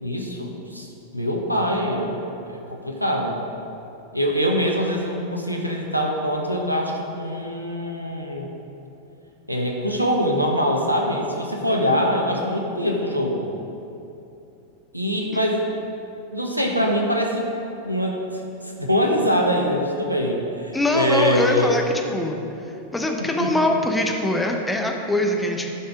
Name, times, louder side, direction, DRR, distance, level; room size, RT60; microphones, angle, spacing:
voice 1, 0.0-3.4 4.1-8.5 9.5-13.5 14.9-15.6 16.3-17.5 17.8-21.8 23.4-23.5, equal, 90° right, 0 dB, 1.1 m, -24 dB
voice 2, 20.7-22.4 22.9-25.7, left 1 dB, 5° left, 2 dB, 1.0 m, -22 dB
11.0 x 5.4 x 5.0 m, 2.8 s
figure-of-eight pair, 90°, 0 cm